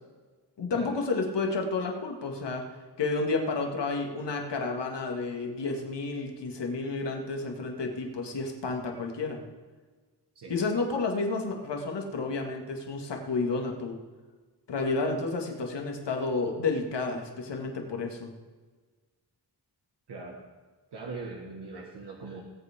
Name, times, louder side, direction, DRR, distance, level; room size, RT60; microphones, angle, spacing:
voice 1, 0.6-2.6 3.0-9.4 10.5-14.0 14.7-18.3, left 3 dB, 75° left, 2 dB, 2.2 m, -31 dB
voice 2, 20.1-20.5 20.9-22.4, right 3 dB, 70° right, -1 dB, 1.8 m, -41 dB
19.5 x 8.5 x 3.7 m, 1.4 s
wide cardioid pair, 95°, 42 cm